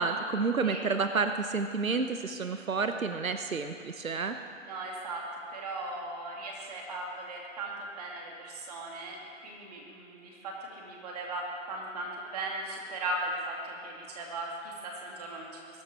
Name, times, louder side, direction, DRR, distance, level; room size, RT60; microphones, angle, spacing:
voice 1, 0.0-4.4, right 4 dB, 90° right, 8 dB, 1.0 m, -30 dB
voice 2, 4.6-5.3 5.5-15.6, right 2 dB, 30° right, -1 dB, 2.6 m, -38 dB
21.5 x 12.0 x 4.5 m, 2.4 s
figure-of-eight pair, 155°, 40 cm